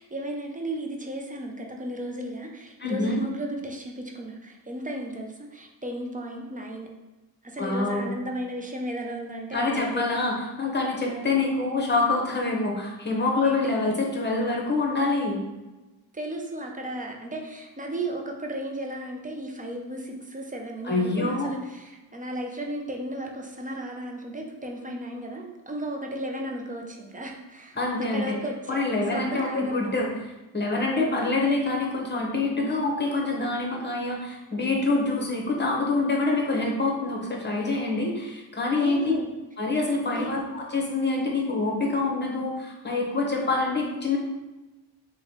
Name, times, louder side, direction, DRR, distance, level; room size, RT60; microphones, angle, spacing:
voice 1, 0.0-6.9 7.4-10.0 11.1-11.3 13.4-13.7 16.1-27.8 28.1-28.8 29.1-29.9 30.9-31.3 38.7-39.3 40.1-40.3, right 1 dB, 20° right, 1 dB, 0.4 m, -34 dB
voice 2, 2.8-3.2 7.6-8.1 9.5-15.4 20.8-21.5 27.7-28.3 28.7-30.1 30.5-39.0 39.6-44.2, left 3 dB, 25° left, -1 dB, 0.9 m, -26 dB
3.1 x 2.2 x 2.8 m, 1.1 s
cardioid pair, 60°, 47 cm